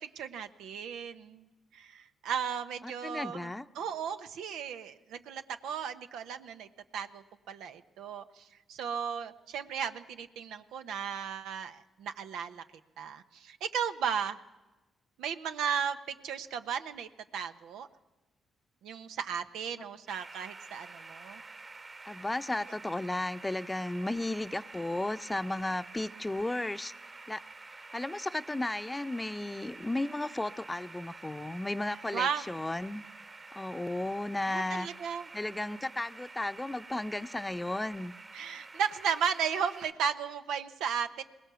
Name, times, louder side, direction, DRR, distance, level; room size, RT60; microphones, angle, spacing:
voice 1, 0.0-1.5 1.7-3.5 3.8-6.7 6.9-8.4 8.7-12.6 13.0-14.4 15.2-17.9 18.8-21.4 32.1-32.4 34.5-35.2 38.3-41.2, right 7 dB, 80° right, 9 dB, 1.0 m, -35 dB
voice 2, 2.8-3.7 19.8-19.9 22.1-26.9 27.3-27.4 27.7-33.0 33.5-34.9 35.3-38.1, left 2 dB, 20° left, 12 dB, 0.8 m, -34 dB
sound 1, 20.1-39.9, right 3 dB, 45° right, 2.5 m, -49 dB
22.0 x 19.0 x 7.0 m, 1.1 s
supercardioid pair, 50°, 0 cm